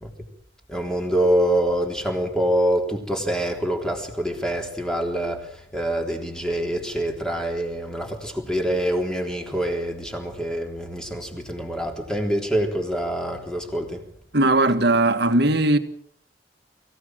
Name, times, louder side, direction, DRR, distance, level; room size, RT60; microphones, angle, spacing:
voice 1, 0.7-14.0, right 1 dB, 5° left, 3.6 m, -25 dB
voice 2, 14.3-15.8, right 2 dB, 65° right, 1.9 m, -18 dB
24.5 x 16.0 x 7.7 m
head